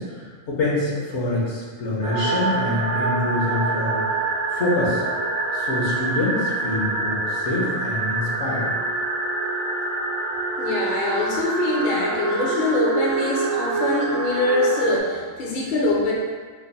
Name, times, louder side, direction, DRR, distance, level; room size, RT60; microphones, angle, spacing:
voice 1, 0.0-5.0 5.5-8.7, left 1 dB, 70° left, -5 dB, 1.2 m, -26 dB
sound 1, 2.0-15.0, right 3 dB, 70° right, 0.9 m, -26 dB
voice 2, 10.6-16.1, left 2 dB, 50° left, -3 dB, 0.7 m, -24 dB
3.2 x 2.4 x 3.9 m, 1.5 s
omnidirectional pair, 1.3 m